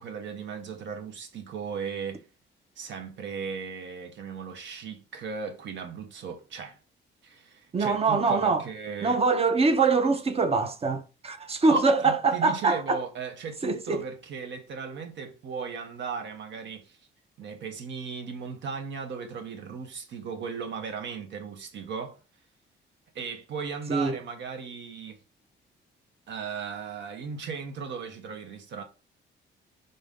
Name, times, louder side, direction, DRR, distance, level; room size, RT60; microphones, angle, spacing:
voice 1, 0.0-2.2 2.8-6.8 7.2-9.2 11.7-17.0 17.4-22.2 23.1-25.2 26.3-28.8, right 5 dB, 65° right, 0.7 m, -36 dB
voice 2, 7.7-8.7 9.0-13.0 13.6-14.0 23.9-24.2, right 4 dB, 30° right, 0.6 m, -24 dB
3.8 x 2.6 x 3.5 m
cardioid pair, 90°, 20 cm